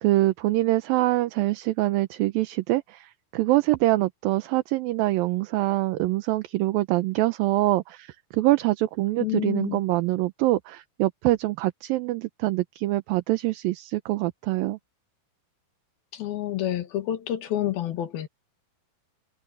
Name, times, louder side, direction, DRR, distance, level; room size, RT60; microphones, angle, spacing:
voice 1, 0.0-14.8, right 17 dB, 80° right, 2.5 m, -24 dB
voice 2, 9.2-9.8 16.1-18.3, left 12 dB, 80° left, 3.6 m, -28 dB
omnidirectional pair, 4.3 m